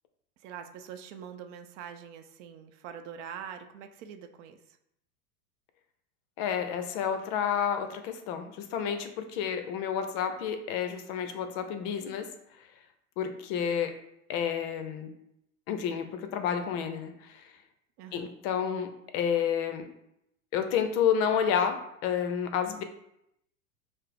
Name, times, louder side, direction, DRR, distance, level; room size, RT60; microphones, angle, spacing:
voice 1, 0.4-4.8 18.0-18.4, right 8 dB, 55° right, 7 dB, 0.6 m, -44 dB
voice 2, 6.4-12.3 13.2-14.0 14.3-15.1 15.7-17.4 18.1-19.9 20.5-22.8, left 8 dB, 45° left, 7 dB, 0.6 m, -30 dB
5.5 x 2.0 x 3.4 m, 0.80 s
hypercardioid pair, 110°, 43 cm